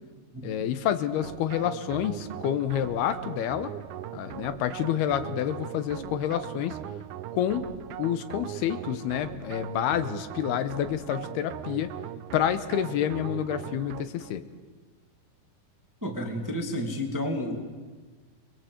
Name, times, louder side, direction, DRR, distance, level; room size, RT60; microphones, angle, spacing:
voice 1, 0.4-3.7 4.1-6.8 7.3-7.7 8.0-11.9 12.3-14.4, left 10 dB, 75° left, 12 dB, 2.8 m, -28 dB
sound 1, 1.2-14.4, right 11 dB, 80° right, 1.8 m, -39 dB
voice 2, 16.0-17.6, equal, 5° right, 3 dB, 1.4 m, -31 dB
29.5 x 21.5 x 8.1 m, 1.4 s
omnidirectional pair, 4.7 m